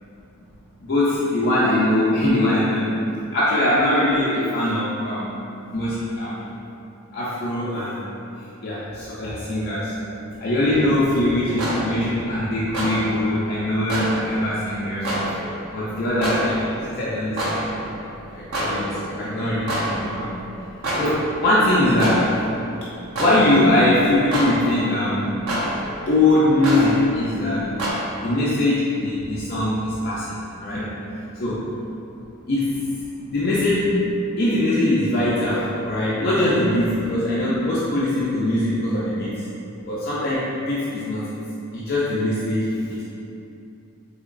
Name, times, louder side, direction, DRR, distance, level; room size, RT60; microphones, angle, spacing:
voice 1, 0.8-2.9 3.3-5.3 5.7-6.5 7.1-8.1 8.6-10.0 10.4-15.3 15.7-20.3 20.9-22.3 23.2-25.3 26.1-27.9 28.2-30.9 31.4-31.6 32.5-32.8 33.3-34.0 34.4-39.3 39.8-41.4 41.7-43.1, left 1 dB, 45° left, -8 dB, 0.4 m, -22 dB
sound 1, 10.7-27.9, equal, 90° right, 0.7 m, -30 dB
3.7 x 2.8 x 2.5 m, 2.7 s
head